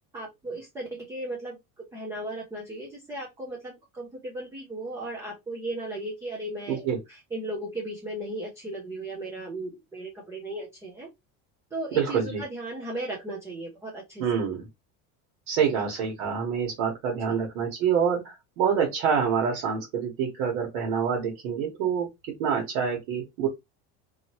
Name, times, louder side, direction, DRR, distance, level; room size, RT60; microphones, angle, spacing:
voice 1, 0.1-11.1 11.7-14.2, right 1 dB, 10° right, 0.3 m, -36 dB
voice 2, 11.9-12.4 14.2-14.7 15.5-22.1 22.4-23.5, right 7 dB, 85° right, 1.4 m, -26 dB
2.9 x 2.7 x 2.9 m
cardioid pair, 175°, 38 cm